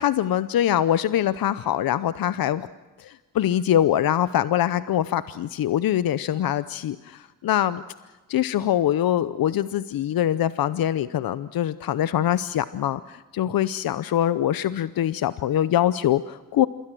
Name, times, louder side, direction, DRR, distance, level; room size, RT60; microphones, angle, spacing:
voice 1, 0.0-2.7 3.0-7.8 8.3-16.7, left 11 dB, 75° left, 14 dB, 0.7 m, -23 dB
27.0 x 22.0 x 7.7 m, 1.2 s
cardioid pair, 60°, 35 cm